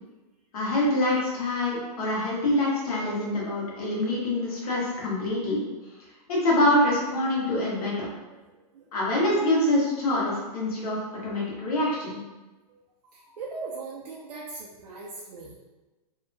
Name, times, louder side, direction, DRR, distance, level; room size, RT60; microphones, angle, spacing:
voice 1, 0.5-5.6 6.3-8.1 8.9-11.0 11.2-12.2, left 1 dB, 65° left, -5 dB, 1.1 m, -25 dB
voice 2, 8.3-8.9 12.7-15.6, right 4 dB, 85° right, -3 dB, 0.5 m, -40 dB
2.7 x 2.2 x 2.6 m, 1.2 s
hypercardioid pair, 160°, 20 cm